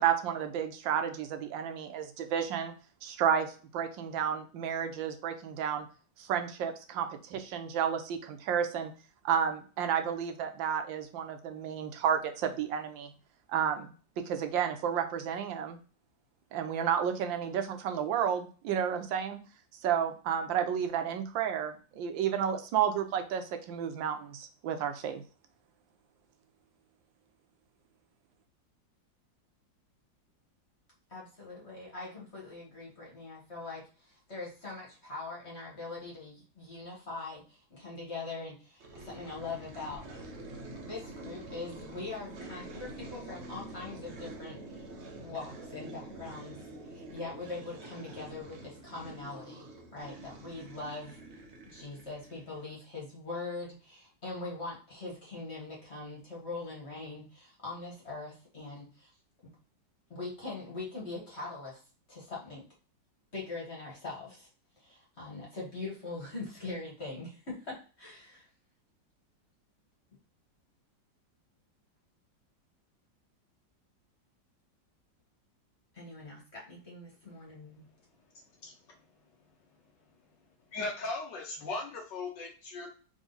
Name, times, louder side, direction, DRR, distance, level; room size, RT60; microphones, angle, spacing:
voice 1, 0.0-2.7 3.0-5.9 6.2-8.9 9.2-13.1 13.5-13.9 14.2-15.8 16.5-19.4 19.8-25.2, right 8 dB, 85° right, 7 dB, 1.4 m, -31 dB
voice 2, 31.1-40.4 40.8-44.9 45.2-49.7 49.9-51.2 51.7-59.1 60.1-61.8 62.1-62.7 63.3-64.5 64.8-68.5 75.9-77.9, left 3 dB, 35° left, -3 dB, 1.6 m, -42 dB
sound 1, 38.8-52.7, right 2 dB, 50° right, 0.9 m, -46 dB
voice 3, 80.7-82.9, left 3 dB, 75° left, 1 dB, 1.4 m, -37 dB
3.7 x 3.6 x 3.9 m, 0.37 s
omnidirectional pair, 2.0 m